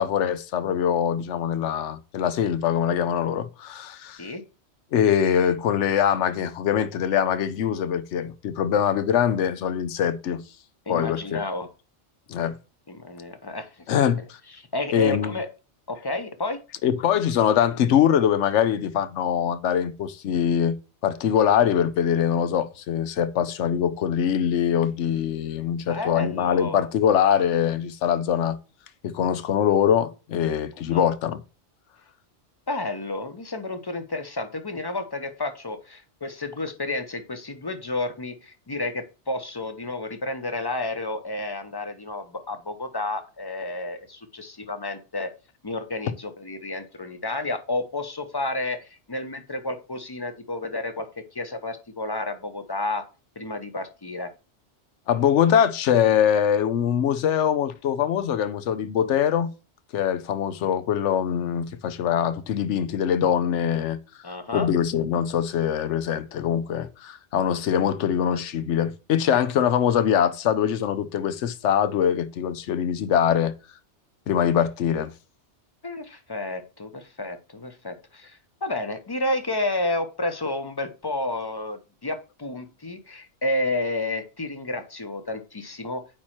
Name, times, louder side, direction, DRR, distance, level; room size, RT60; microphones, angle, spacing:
voice 1, 0.0-4.2 4.9-10.4 10.9-11.4 12.3-12.6 13.9-14.2 14.9-15.3 16.8-20.8 21.0-28.6 29.0-31.4 55.1-59.5 59.9-64.0 64.5-73.5 74.3-75.1, left 9 dB, 85° left, 1.0 m, -23 dB
voice 2, 10.9-11.7 12.9-14.0 14.6-15.5 15.9-16.6 25.8-26.9 30.9-31.1 32.7-45.3 45.6-53.0 53.4-54.3 64.2-64.7 75.8-86.0, left 2 dB, 25° left, 0.6 m, -31 dB
8.8 x 3.0 x 4.3 m
omnidirectional pair, 1.2 m